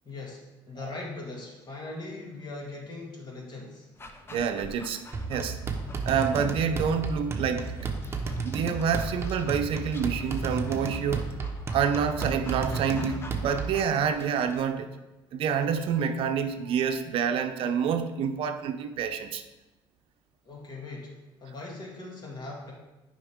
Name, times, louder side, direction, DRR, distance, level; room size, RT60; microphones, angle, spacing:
voice 1, 0.0-3.9 20.4-22.7, left 2 dB, 45° left, -2 dB, 2.2 m, -40 dB
Dog, 4.0-14.7, left 2 dB, 25° left, 0.8 m, -48 dB
voice 2, 4.3-5.0 5.3-5.6 6.1-7.8 8.4-11.3 11.7-14.9 15.3-19.4, right 7 dB, 60° right, 8 dB, 0.6 m, -27 dB
sound 1, 5.1-13.9, right 4 dB, 25° right, 1.0 m, -33 dB
8.9 x 5.3 x 3.6 m, 1.1 s
cardioid pair, 100°, 10 cm